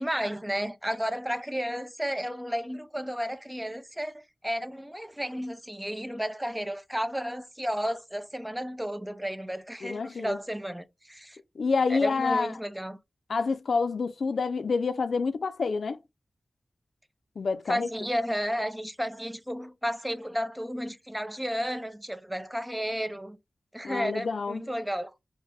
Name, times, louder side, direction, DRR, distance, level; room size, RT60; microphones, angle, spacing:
voice 1, 0.0-11.4 11.9-13.0 17.7-23.4 23.7-25.1, equal, 10° right, 0.5 m, -32 dB
voice 2, 9.8-10.4 11.6-12.5 13.3-16.0 17.4-17.9 23.8-24.6, left 4 dB, 90° left, 0.3 m, -28 dB
4.1 x 2.1 x 3.3 m
wide cardioid pair, 65°, 0 cm